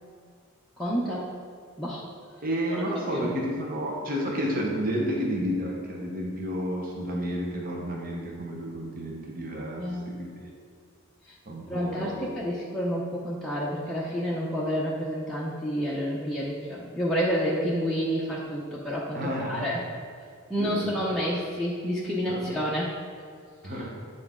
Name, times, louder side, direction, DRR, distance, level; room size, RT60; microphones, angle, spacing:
voice 1, 0.8-1.3 1.8-2.0 2.7-2.8 3.1-3.3 9.8-10.1 11.2-11.3 11.7-19.8 20.5-22.9 23.6-23.7, equal, ahead, -7 dB, 0.6 m, -29 dB
voice 2, 2.4-10.3 11.5-12.3 19.1-19.7 20.6-21.1 22.3-22.4 23.6-23.9, equal, 40° right, -2 dB, 1.0 m, -31 dB
9.3 x 4.0 x 3.7 m, 2.2 s
head